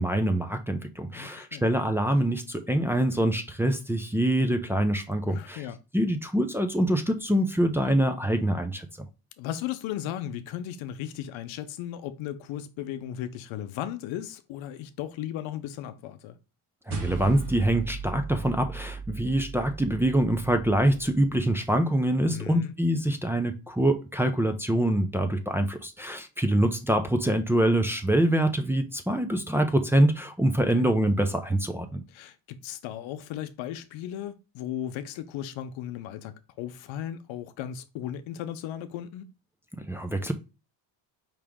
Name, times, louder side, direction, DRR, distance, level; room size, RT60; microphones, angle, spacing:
voice 1, 0.0-5.6 5.9-8.9 16.9-32.0 39.9-40.3, right 1 dB, 5° right, 0.5 m, -25 dB
voice 2, 1.1-1.7 5.3-5.8 9.4-16.4 22.3-22.7 30.7-30.9 32.1-39.3, left 11 dB, 90° left, 0.8 m, -36 dB
sound 1, 16.9-21.5, right 4 dB, 50° right, 1.4 m, -38 dB
5.1 x 2.9 x 3.5 m
cardioid pair, 115°, 46 cm